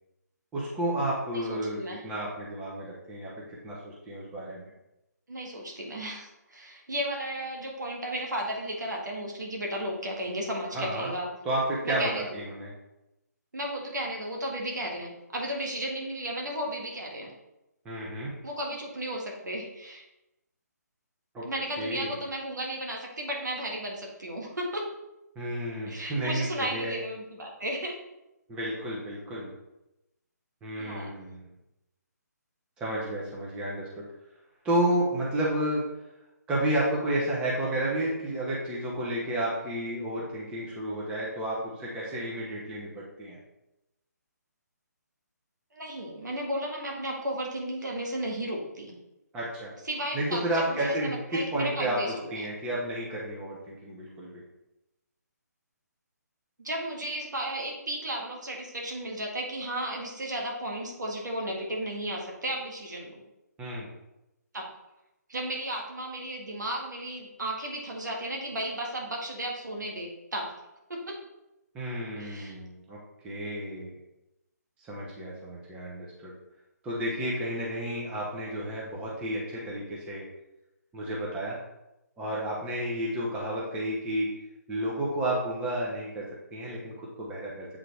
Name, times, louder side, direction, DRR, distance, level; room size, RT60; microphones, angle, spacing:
voice 1, 0.5-1.8 2.0-4.7 10.7-11.1 11.4-12.7 17.8-18.3 21.3-21.5 21.8-22.2 25.4-27.0 28.5-29.5 30.6-31.4 32.8-34.0 34.6-35.8 36.5-43.4 49.3-49.7 50.1-54.4 63.6-63.9 71.7-73.0 73.2-73.9 74.9-76.3 76.8-80.3 80.9-81.6 82.2-84.3 84.7-87.7, right 1 dB, 10° right, -5 dB, 0.9 m, -31 dB
voice 2, 1.3-2.0 5.3-11.3 11.8-12.4 13.5-17.3 18.4-20.0 21.4-24.9 25.9-28.0 30.8-31.1 45.7-49.0 49.8-52.3 56.6-63.2 64.5-64.7 65.3-70.5 70.9-71.2 72.2-72.6, right 1 dB, 85° right, -1 dB, 1.8 m, -34 dB
7.9 x 3.7 x 3.4 m, 0.91 s
hypercardioid pair, 155°, 10 cm